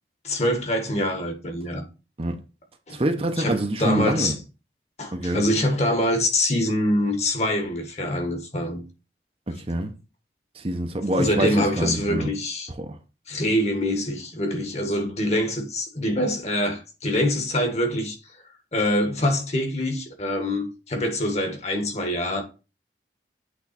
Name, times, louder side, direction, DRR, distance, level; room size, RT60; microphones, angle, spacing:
voice 1, 0.2-1.8 2.9-3.0 3.4-4.3 5.0-8.8 11.1-12.7 13.3-18.1 18.7-22.4, left 1 dB, 40° left, 1.6 m, -25 dB
voice 2, 2.9-4.4 5.1-5.4 9.5-9.9 10.5-12.3 12.8-13.0, right 1 dB, 35° right, 0.8 m, -25 dB
8.2 x 3.7 x 4.2 m
head